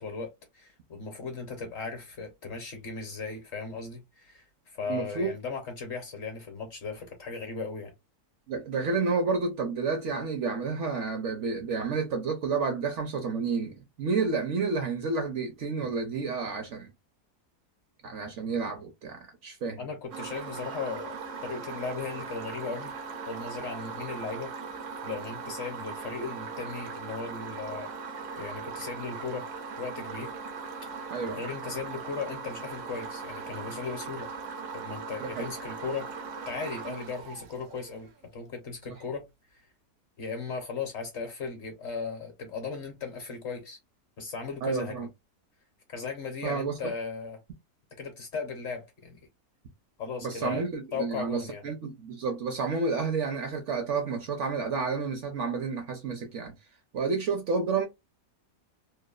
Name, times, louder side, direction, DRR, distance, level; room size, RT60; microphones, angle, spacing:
voice 1, 0.0-4.4 4.7-7.9 19.8-21.2 21.4-23.0 23.3-24.5 25.0-27.9 28.3-29.5 29.8-30.3 30.9-34.3 34.7-36.1 36.5-39.3 39.5-39.6 40.2-43.8 44.2-45.1 45.9-47.4 48.0-49.2 50.0-51.6, left 5 dB, 55° left, 0.9 m, -37 dB
voice 2, 4.9-5.3 8.5-16.9 18.0-19.9 31.1-31.4 35.4-35.5 38.9-39.0 44.6-45.1 46.4-46.8 50.2-56.5 56.9-57.9, right 4 dB, 65° right, 0.8 m, -30 dB
sound 1, 20.1-38.1, right 5 dB, 80° right, 1.3 m, -39 dB
3.0 x 2.1 x 2.2 m
omnidirectional pair, 1.7 m